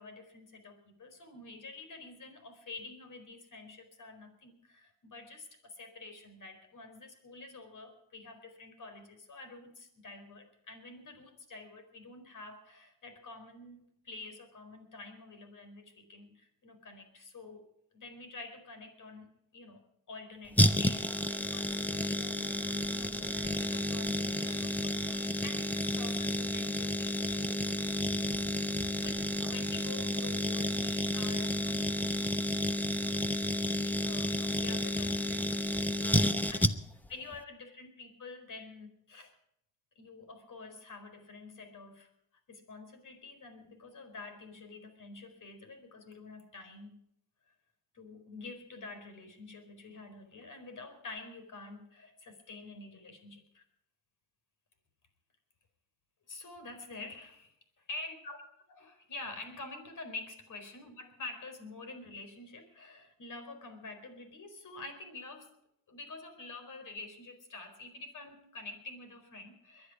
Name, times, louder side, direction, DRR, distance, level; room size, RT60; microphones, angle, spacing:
voice 1, 0.0-28.4 28.6-32.0 33.7-36.7 37.1-39.3 40.0-42.1 42.5-47.0 47.5-47.6 47.9-53.6 56.3-58.4 58.7-65.5 65.9-69.9, left 3 dB, 45° left, 8 dB, 4.6 m, -48 dB
sound 1, 20.6-37.1 37.3-37.4, left 1 dB, 5° left, 0.8 m, -31 dB
22.5 x 10.5 x 5.0 m, 0.75 s
supercardioid pair, 80°, 42 cm